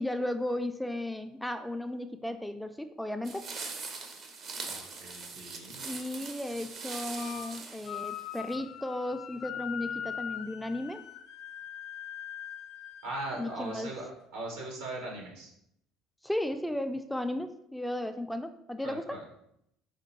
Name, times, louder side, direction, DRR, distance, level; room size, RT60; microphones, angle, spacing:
voice 1, 0.0-3.5 5.8-11.0 13.4-13.9 16.2-19.2, left 1 dB, 5° left, 8 dB, 0.3 m, -35 dB
sound 1, 3.2-8.5, right 4 dB, 50° right, 0.7 m, -42 dB
voice 2, 4.6-5.8 13.0-14.1 14.3-15.5 18.8-19.2, right 2 dB, 80° right, -1 dB, 1.5 m, -39 dB
sound 2, 7.1-7.5 7.8-13.9, left 10 dB, 65° left, 0.5 m, -41 dB
4.9 x 2.2 x 4.5 m, 0.76 s
hypercardioid pair, 75°, 0 cm